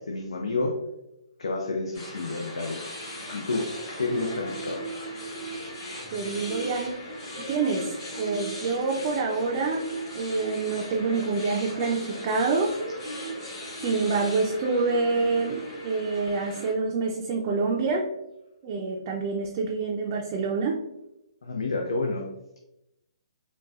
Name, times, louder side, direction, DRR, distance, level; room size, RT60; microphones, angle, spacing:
voice 1, 0.1-0.7 1.4-2.8 3.3-3.7 4.0-4.8 21.4-22.3, left 3 dB, 90° left, 1 dB, 0.5 m, -29 dB
sound 1, 1.9-16.7, right 1 dB, 35° left, 1.3 m, -37 dB
voice 2, 6.1-6.9 7.5-9.8 10.2-12.7 13.8-15.6 15.8-18.1 18.6-20.8, right 4 dB, 35° right, -1 dB, 0.4 m, -27 dB
3.9 x 2.2 x 2.4 m, 0.89 s
hypercardioid pair, 150°, 3 cm